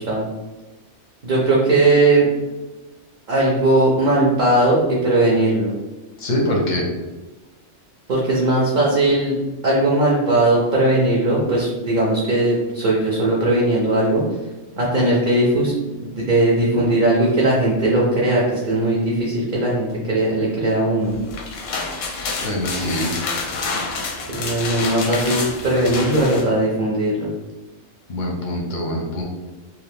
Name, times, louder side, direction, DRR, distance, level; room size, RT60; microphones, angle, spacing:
voice 1, 1.2-2.3 3.3-5.8 8.1-9.4 9.6-14.2 14.8-15.7 16.0-21.2 24.3-27.3, right 2 dB, 50° right, -4 dB, 0.6 m, -18 dB
voice 2, 6.2-6.9 22.4-23.1 28.1-29.2, left 1 dB, 50° left, -1 dB, 0.6 m, -23 dB
sound 1, 21.1-26.5, left 4 dB, 90° left, 1.0 m, -28 dB
2.6 x 2.4 x 3.4 m, 1.1 s
omnidirectional pair, 1.3 m